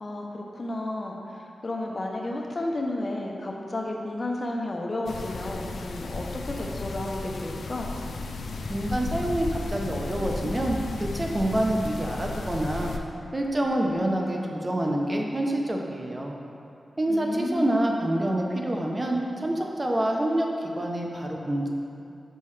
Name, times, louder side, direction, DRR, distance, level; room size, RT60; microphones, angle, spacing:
voice 1, 0.0-7.9 17.1-17.8, left 1 dB, 40° left, 0 dB, 0.6 m, -32 dB
sound 1, 5.1-13.0, left 3 dB, 85° left, 0.3 m, -34 dB
voice 2, 8.7-12.9 13.3-16.4 17.0-21.7, right 1 dB, 25° right, 0 dB, 0.6 m, -27 dB
5.5 x 5.5 x 3.2 m, 2.6 s
wide cardioid pair, 85°, 0 cm